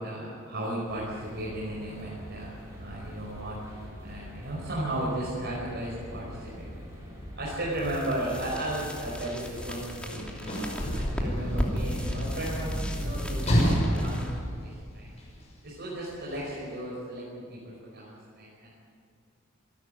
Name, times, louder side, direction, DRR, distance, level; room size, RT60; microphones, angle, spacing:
voice 1, 0.0-6.7 7.4-13.6 14.0-15.1 15.6-18.7, right 1 dB, 55° right, -5 dB, 5.4 m, -35 dB
sound 1, 0.9-10.6, equal, 15° right, 6.7 m, -44 dB
sound 2, 7.7-15.5, equal, 5° left, 2.9 m, -38 dB
Sliding door / Slam, 10.0-15.4 16.3-16.4, equal, 30° left, 6.8 m, -29 dB
27.0 x 13.0 x 9.2 m, 2.3 s
head